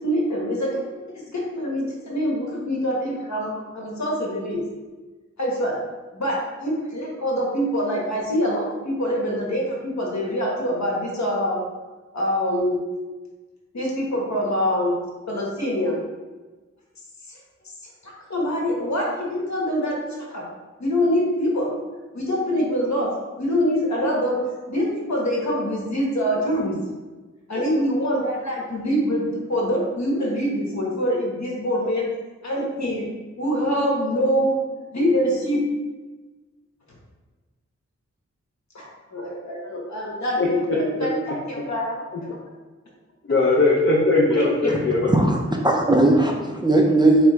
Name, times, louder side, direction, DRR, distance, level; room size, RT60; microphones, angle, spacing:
voice 1, 0.0-0.8 1.1-4.6 5.4-5.8 6.1-11.6 12.1-12.8 13.7-14.9 15.3-16.0 17.3-17.4 18.0-20.0 20.3-20.4 20.8-21.7 22.1-23.1 23.4-24.4 24.7-26.8 27.5-32.0 32.4-33.1 33.4-34.6 34.9-35.6 38.7-42.4 44.3-44.8, equal, 65° left, -3 dB, 1.3 m, -24 dB
voice 2, 40.4-40.8 43.3-45.1, left 3 dB, 45° left, -5 dB, 0.7 m, -19 dB
voice 3, 45.1-47.3, right 2 dB, 15° right, 0 dB, 0.5 m, -18 dB
4.7 x 3.4 x 3.1 m, 1.3 s
wide cardioid pair, 80°, 29 cm